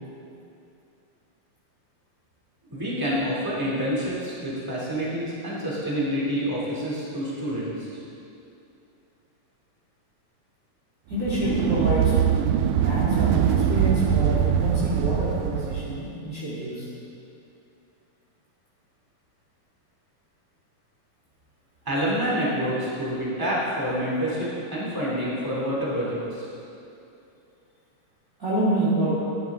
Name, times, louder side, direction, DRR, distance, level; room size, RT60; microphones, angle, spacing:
voice 1, 2.7-7.9 21.8-26.5, equal, 5° right, -7 dB, 2.6 m, -27 dB
voice 2, 11.1-12.3 12.8-16.9 28.4-29.2, right 1 dB, 25° right, -9 dB, 2.2 m, -27 dB
sound 1, 11.1-16.0, right 9 dB, 85° right, 1.4 m, -22 dB
15.0 x 11.0 x 3.7 m, 2.7 s
omnidirectional pair, 3.3 m